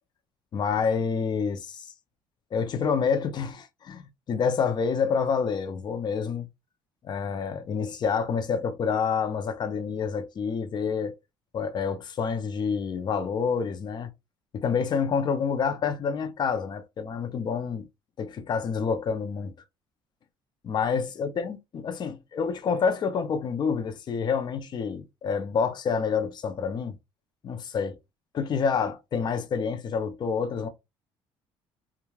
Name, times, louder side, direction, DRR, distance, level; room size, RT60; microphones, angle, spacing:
voice 1, 0.5-1.9 2.5-6.5 7.0-11.1 11.5-14.1 14.5-17.9 18.2-19.5 20.6-27.0 27.4-28.0 28.3-30.7, left 6 dB, 45° left, 0.6 m, -28 dB
3.0 x 2.3 x 2.3 m
cardioid pair, 95°, 10 cm